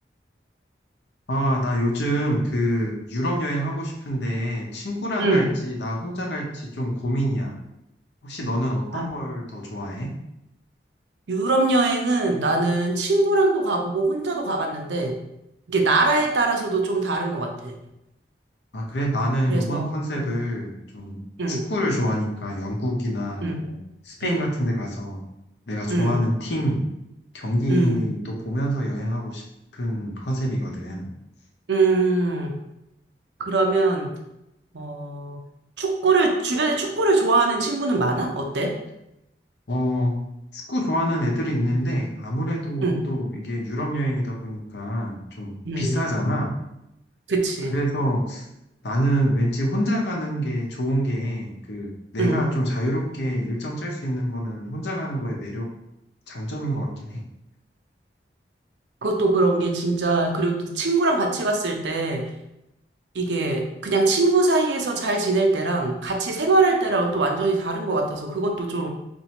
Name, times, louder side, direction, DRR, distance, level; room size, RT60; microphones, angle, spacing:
voice 1, 1.3-7.5 8.2-10.1 18.7-21.2 21.5-23.7 24.0-25.2 25.7-26.8 27.3-29.4 29.7-31.1 39.7-40.2 40.5-46.5 47.7-48.5 48.8-55.7 56.3-57.2, equal, 75° left, -1 dB, 0.8 m, -26 dB
voice 2, 5.2-5.5 8.9-9.0 11.3-15.2 15.7-17.7 19.5-19.8 20.2-20.3 21.4-21.6 23.4-23.6 24.2-24.4 25.9-26.2 27.7-28.0 31.7-32.5 33.4-34.1 34.7-35.4 35.8-38.7 42.8-43.0 45.6-46.0 47.3-47.8 52.2-52.5 59.0-62.3 63.1-68.9, right 3 dB, 90° right, 2 dB, 0.6 m, -22 dB
4.2 x 2.6 x 2.9 m, 0.86 s
head